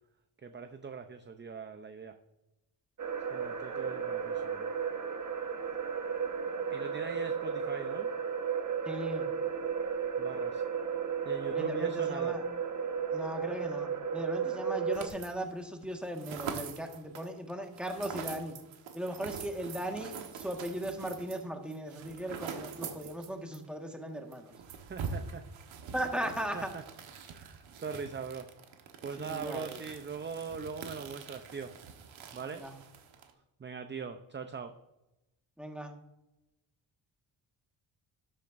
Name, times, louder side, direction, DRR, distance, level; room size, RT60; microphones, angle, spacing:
voice 1, 0.4-2.1 3.3-4.7 6.7-8.1 10.2-10.6 11.2-12.4 24.9-25.4 26.5-26.8 27.3-28.5 29.0-31.7 32.3-32.6 33.6-34.7, right 5 dB, 25° right, 7 dB, 0.6 m, -41 dB
sound 1, 3.0-15.1, right 7 dB, 40° right, 1.2 m, -34 dB
voice 2, 8.8-9.3 11.5-12.4 13.1-18.5 18.9-24.5 25.9-26.7 29.2-29.8 32.6-32.7 35.6-35.9, right 1 dB, ahead, 3 dB, 1.6 m, -38 dB
sound 2, 14.9-15.5 15.8-23.7 23.9-24.0 24.3-33.3, right 6 dB, 85° right, 1.4 m, -44 dB
12.5 x 8.6 x 2.6 m, 0.95 s
cardioid pair, 80°, 46 cm